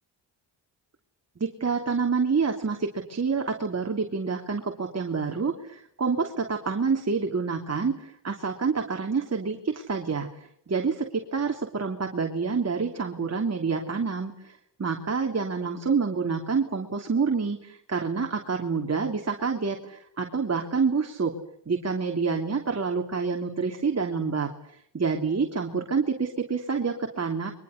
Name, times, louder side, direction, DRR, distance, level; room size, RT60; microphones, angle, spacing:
voice 1, 1.4-14.5 14.8-21.3 21.7-24.5 24.9-27.5, right 5 dB, 35° right, 3 dB, 3.1 m, -27 dB
29.5 x 23.5 x 6.6 m, 0.70 s
cardioid pair, 70°, 46 cm